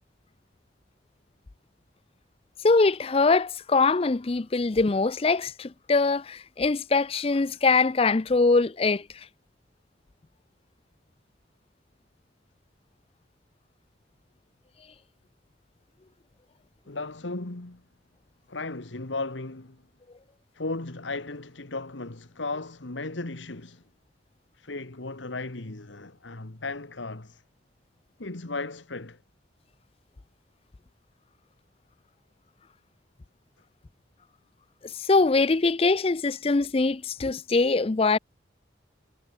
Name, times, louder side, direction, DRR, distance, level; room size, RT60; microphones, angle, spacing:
voice 1, 2.6-9.0 35.0-38.2, left 3 dB, 30° left, 0.5 m, -23 dB
voice 2, 16.9-17.8 18.5-19.8 20.5-23.8 24.6-27.4 28.2-29.2, left 3 dB, 80° left, 1.7 m, -35 dB
head